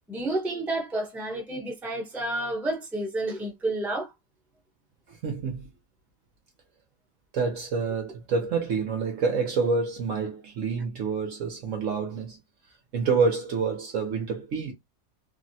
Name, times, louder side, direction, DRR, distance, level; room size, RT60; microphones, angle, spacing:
voice 1, 0.1-4.1, right 2 dB, ahead, 0.7 m, -30 dB
voice 2, 5.1-5.7 7.3-12.4 12.9-14.7, right 5 dB, 65° right, 0.9 m, -27 dB
3.4 x 2.1 x 2.6 m
omnidirectional pair, 1.7 m